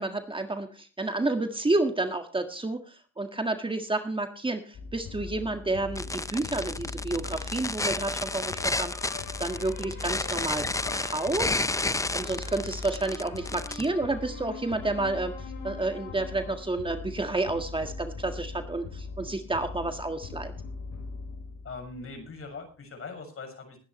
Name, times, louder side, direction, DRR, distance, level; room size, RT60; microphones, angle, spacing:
voice 1, 0.0-10.6 10.9-20.5, right 2 dB, 15° right, 6 dB, 1.7 m, -30 dB
sound 1, 4.7-22.3, left 4 dB, 75° left, 7.4 m, -40 dB
sound 2, 6.0-13.9, left 2 dB, 10° left, 0.7 m, -31 dB
voice 2, 21.6-23.8, left 4 dB, 45° left, 6 dB, 6.7 m, -41 dB
20.5 x 10.0 x 3.2 m, 0.39 s
cardioid pair, 90°, 30 cm